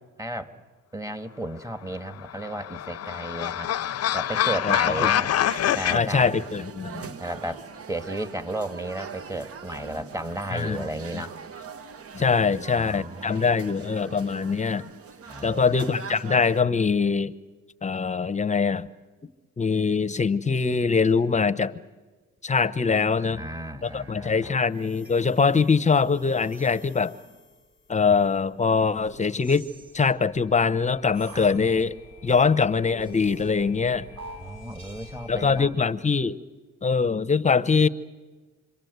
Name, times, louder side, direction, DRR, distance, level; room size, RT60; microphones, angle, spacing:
voice 1, 0.2-0.6 0.9-3.7 4.1-5.3 5.7-6.3 7.2-11.4 12.4-14.2 15.3-15.8 23.1-24.6 31.3-31.5 34.2-35.8, right 1 dB, 10° right, 10 dB, 1.6 m, -34 dB
Negative Laughter, 2.1-6.0, left 11 dB, 55° left, 0.7 m, -25 dB
voice 2, 4.6-5.1 5.9-7.1 10.5-10.8 11.1-11.2 12.1-14.9 15.4-17.3 17.8-18.9 19.6-21.7 22.4-23.4 23.8-27.1 27.9-29.7 29.9-31.9 32.2-34.1 35.3-36.4 36.8-37.9, left 5 dB, 25° left, 14 dB, 0.9 m, -23 dB
sound 1, 5.5-16.6, right 6 dB, 50° right, 1.1 m, -42 dB
sound 2, 23.8-35.6, right 1 dB, 65° right, 7.2 m, -47 dB
27.0 x 23.5 x 8.1 m, 1.3 s
cardioid pair, 90°, 30 cm